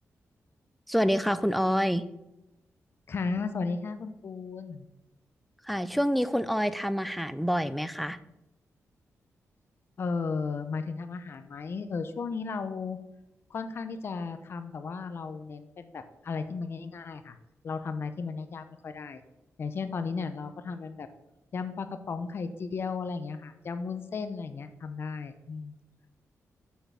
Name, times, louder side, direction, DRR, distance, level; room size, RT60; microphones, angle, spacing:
voice 1, 0.9-2.0 5.7-8.2, equal, ahead, 13 dB, 0.3 m, -27 dB
voice 2, 3.1-4.9 10.0-13.0 13.5-17.4 17.6-19.2 19.6-21.1 21.5-25.8, left 4 dB, 45° left, 9 dB, 0.6 m, -35 dB
6.4 x 5.7 x 5.5 m, 0.93 s
wide cardioid pair, 145°, 5 cm